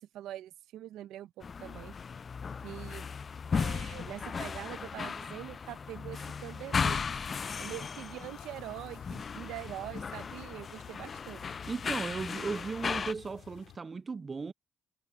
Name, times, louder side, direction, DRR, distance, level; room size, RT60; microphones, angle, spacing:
voice 1, 0.0-1.9 2.6-3.1 3.5-7.3 7.6-11.4, right 13 dB, 90° right, 0.9 m, -44 dB
sound 1, 1.4-13.1, left 5 dB, 40° left, 0.3 m, -36 dB
sound 2, 8.2-13.8, left 12 dB, 80° left, 3.3 m, -53 dB
voice 2, 11.7-14.5, right 4 dB, 35° right, 0.4 m, -36 dB
cardioid pair, 90°, 0 cm